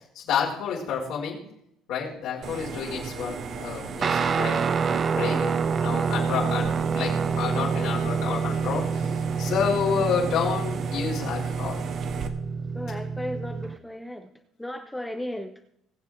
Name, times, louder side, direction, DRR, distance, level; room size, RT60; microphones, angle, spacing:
voice 1, 0.1-1.4 1.9-9.1 9.4-11.8, left 6 dB, 70° left, -4 dB, 4.8 m, -29 dB
sound 1, 2.4-12.3, right 5 dB, 50° right, 1.4 m, -36 dB
Guitar, 4.0-13.7, right 5 dB, 35° right, 0.6 m, -27 dB
voice 2, 12.7-14.3 14.6-15.5, left 1 dB, 5° left, 6 dB, 0.8 m, -35 dB
21.5 x 7.3 x 3.6 m, 0.76 s
cardioid pair, 125°, 0 cm